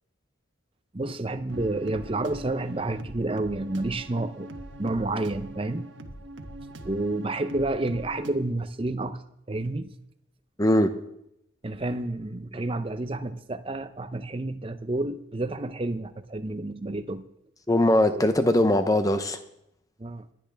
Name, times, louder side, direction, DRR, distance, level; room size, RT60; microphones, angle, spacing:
voice 1, 0.9-4.5 4.8-5.9 6.8-9.2 9.5-9.9 11.6-17.2 18.1-18.2 20.0-20.3, right 2 dB, 25° right, 10 dB, 0.6 m, -30 dB
sound 1, 1.5-8.3, right 1 dB, 70° right, 1.2 m, -42 dB
voice 2, 10.6-10.9 17.7-19.4, left 1 dB, 15° left, 9 dB, 0.8 m, -21 dB
20.5 x 10.5 x 3.5 m, 0.79 s
head